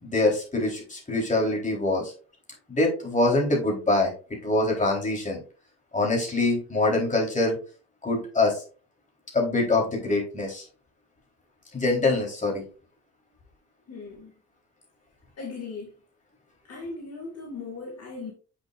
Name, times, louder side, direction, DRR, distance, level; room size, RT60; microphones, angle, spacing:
voice 1, 0.0-2.1 2.7-4.1 4.4-5.4 5.9-7.6 8.0-8.6 9.3-10.6 11.7-12.6, left 2 dB, 25° left, 3.9 m, -24 dB
voice 2, 13.9-14.3 15.4-16.0 16.6-18.3, left 4 dB, 55° left, 2.2 m, -38 dB
7.3 x 6.7 x 2.5 m
cardioid pair, 90°, 30 cm